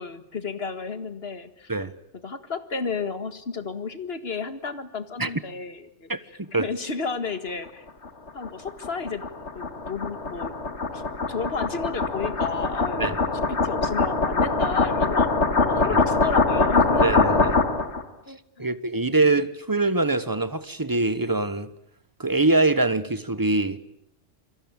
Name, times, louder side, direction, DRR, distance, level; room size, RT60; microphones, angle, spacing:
voice 1, 0.0-1.7 2.2-6.1 6.5-7.9 8.3-9.2 9.5-10.5 10.9-11.0 11.3-15.3 15.6-17.0 18.3-19.1, left 4 dB, 60° left, 2.0 m, -32 dB
voice 2, 6.1-6.7 13.0-13.2 15.8-16.0 17.0-17.6 18.6-21.7 22.2-23.8, right 2 dB, 20° right, 1.2 m, -24 dB
sound 1, 8.0-18.0, left 3 dB, 90° left, 2.2 m, -23 dB
28.0 x 22.5 x 8.9 m
omnidirectional pair, 1.1 m